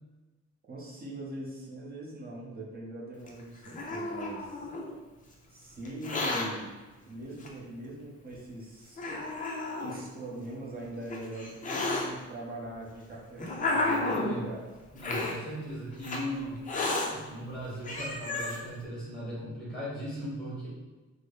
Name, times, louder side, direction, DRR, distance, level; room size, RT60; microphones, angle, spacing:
voice 1, 0.7-4.7 5.5-6.7 7.0-9.0 9.8-14.6, right 1 dB, 30° right, -4 dB, 0.7 m, -42 dB
Hiss, 3.3-4.9 5.9-6.5 7.4-7.5 8.3-8.4 9.0-10.0 10.8-12.0 12.9-14.4 15.0-15.4 16.0-16.2 16.7-17.1 17.6-17.7 17.8-18.6, left 2 dB, 30° left, 0.4 m, -32 dB
voice 2, 14.1-14.4 14.9-16.6 17.1-20.7, equal, ahead, -7 dB, 1.0 m, -38 dB
3.9 x 2.0 x 3.3 m, 1.2 s
wide cardioid pair, 170°, 29 cm